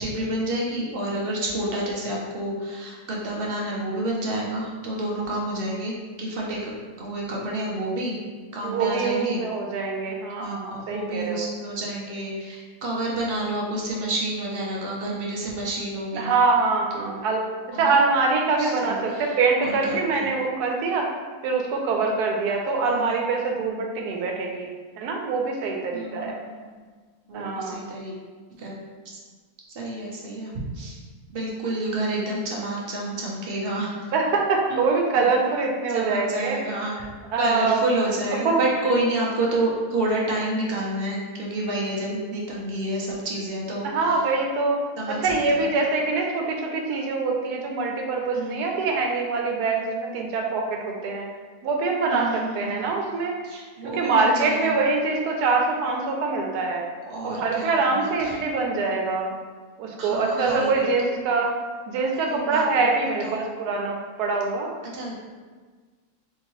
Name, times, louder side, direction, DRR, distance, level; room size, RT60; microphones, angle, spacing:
voice 1, 0.0-5.9 6.2-8.1 8.5-9.4 10.4-16.3 17.0-17.3 17.7-18.0 18.6-19.3 19.6-20.3 22.8-23.1 25.9-26.6 27.3-28.2 28.6-28.8 29.0-29.2 29.7-31.0 31.3-34.1 34.7-34.8 35.1-35.3 35.9-36.9 37.4-44.2 45.0-45.7 48.3-48.6 52.1-52.9 53.4-54.8 57.0-58.4 60.0-60.9 62.2-62.6 63.0-63.5 64.9-65.1, right 1 dB, 55° right, -4 dB, 0.7 m, -29 dB
voice 2, 8.6-11.4 16.2-17.4 17.8-21.1 21.4-24.7 25.0-26.4 27.3-27.9 34.1-36.6 37.3-37.8 38.4-38.6 43.8-44.8 45.1-51.3 51.6-53.3 53.8-56.9 57.2-59.3 59.8-61.5 61.9-64.7, right 4 dB, 90° right, 1 dB, 1.1 m, -24 dB
3.7 x 2.7 x 3.0 m, 1.4 s
omnidirectional pair, 1.6 m